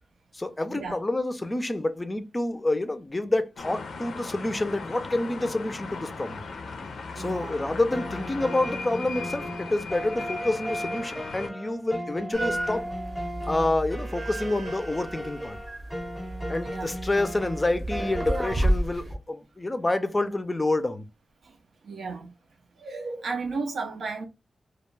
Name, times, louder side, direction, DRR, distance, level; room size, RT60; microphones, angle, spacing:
voice 1, 0.3-6.4 7.2-12.9 13.4-15.6 16.5-21.0, left 2 dB, 20° left, 0.4 m, -28 dB
sound 1, 3.6-11.5, left 4 dB, 85° left, 0.4 m, -38 dB
voice 2, 7.1-7.6 16.6-16.9 21.4-21.6 21.8-22.3 22.8-24.3, right 4 dB, 85° right, 0.5 m, -34 dB
sound 2, 7.5-18.5, equal, ahead, 0.8 m, -36 dB
sound 3, 12.3-19.1, right 1 dB, 50° right, 0.7 m, -32 dB
2.3 x 2.2 x 3.1 m
wide cardioid pair, 100°, 0 cm